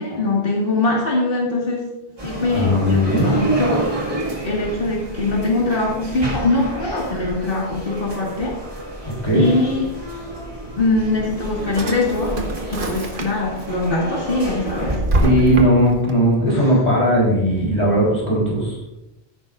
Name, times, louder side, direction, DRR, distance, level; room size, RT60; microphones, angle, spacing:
voice 1, 0.0-1.9 2.2-3.8 4.4-8.6 9.3-9.9 10.8-12.4 12.7-15.0 16.5-16.7, left 2 dB, 60° left, -3 dB, 2.3 m, -22 dB
sound 1, 2.2-15.0, right 1 dB, 30° right, 2.6 m, -29 dB
voice 2, 2.5-3.3 9.2-9.4 15.2-18.8, equal, 40° left, -4 dB, 4.3 m, -17 dB
Drawer open or close, 11.1-13.6 14.0-16.1, right 2 dB, 55° right, 1.3 m, -25 dB
15.5 x 9.1 x 2.6 m, 0.92 s
omnidirectional pair, 1.1 m